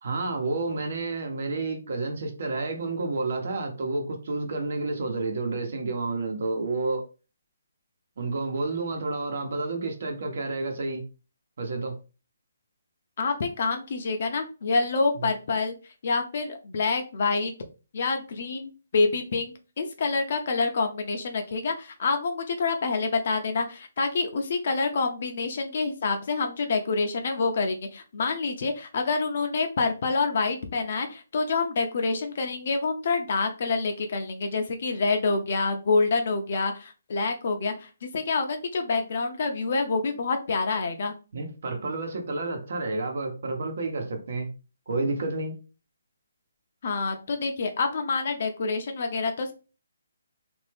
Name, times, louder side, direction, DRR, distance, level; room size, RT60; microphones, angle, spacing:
voice 1, 0.0-7.0 8.2-11.0 11.6-11.9 15.2-15.3 41.3-44.5 44.9-45.5, right 3 dB, 55° right, 1.0 m, -30 dB
voice 2, 13.2-15.7 16.0-17.5 17.9-41.1 46.8-49.5, left 4 dB, 45° left, 0.5 m, -27 dB
3.2 x 2.6 x 3.4 m
hypercardioid pair, 170°, 0 cm